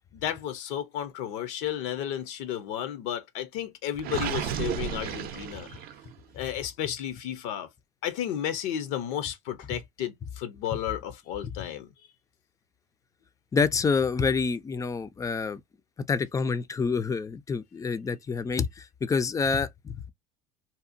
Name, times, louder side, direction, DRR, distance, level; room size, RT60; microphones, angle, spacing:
voice 1, 0.1-5.7 6.3-7.7 8.0-11.9, left 10 dB, 70° left, 0.6 m, -33 dB
Gurgling, 4.0-6.1, right 8 dB, 50° right, 0.5 m, -33 dB
voice 2, 13.5-15.6 16.1-20.1, left 5 dB, 15° left, 0.3 m, -27 dB
2.8 x 2.1 x 2.5 m
supercardioid pair, 100°, 19 cm